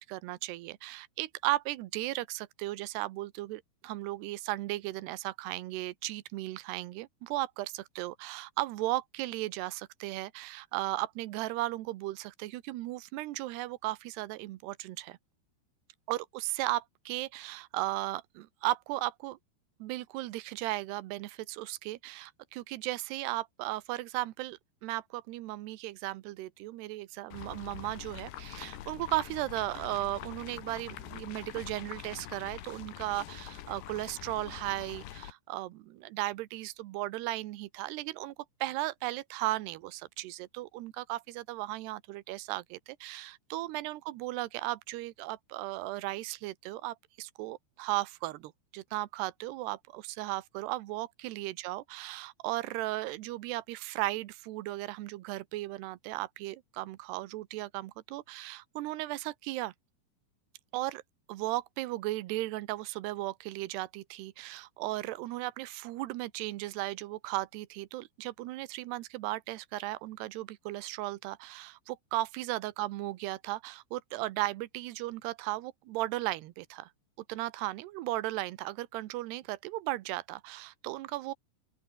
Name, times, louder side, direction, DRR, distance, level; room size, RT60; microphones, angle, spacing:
voice 1, 0.0-15.2 16.1-19.4 19.8-38.3 38.6-59.7 60.7-61.0 61.3-76.9 77.3-81.3, right 18 dB, 80° right, 3.0 m, -36 dB
sound 1, 27.3-35.3, left 12 dB, 75° left, 3.5 m, -45 dB
open air
omnidirectional pair, 4.9 m